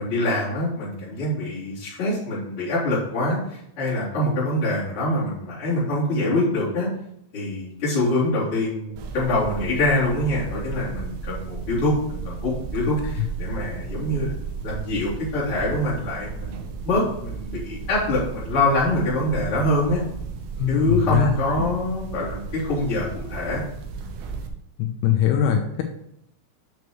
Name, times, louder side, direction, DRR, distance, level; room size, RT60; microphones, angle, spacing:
voice 1, 0.0-6.9 7.3-14.3 14.6-20.0 20.7-23.6, left 1 dB, 30° left, -8 dB, 3.3 m, -24 dB
sound 1, 9.0-24.5, right 5 dB, 80° right, 2.4 m, -34 dB
voice 2, 20.6-21.3 24.8-25.8, left 10 dB, 85° left, 4 dB, 3.1 m, -21 dB
9.3 x 6.7 x 3.1 m, 0.75 s
omnidirectional pair, 6.0 m